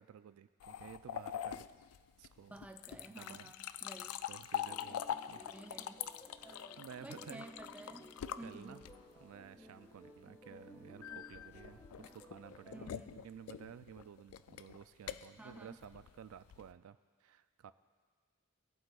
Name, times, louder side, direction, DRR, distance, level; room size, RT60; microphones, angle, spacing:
voice 1, 0.0-1.6 2.2-2.5 3.1-3.5 4.3-5.5 6.4-7.5 8.4-8.8 9.2-17.7, right 8 dB, 75° right, 13 dB, 0.3 m, -53 dB
sound 1, 0.6-9.2 11.0-16.7, left 10 dB, 80° left, 0.3 m, -44 dB
voice 2, 2.5-4.2 5.4-6.0 7.0-8.8 12.7-13.1 15.4-15.8, right 1 dB, 5° right, 5 dB, 0.4 m, -52 dB
sound 2, 4.6-12.9, equal, 20° left, 1.6 m, -57 dB
19.0 x 7.8 x 2.3 m, 1.5 s
head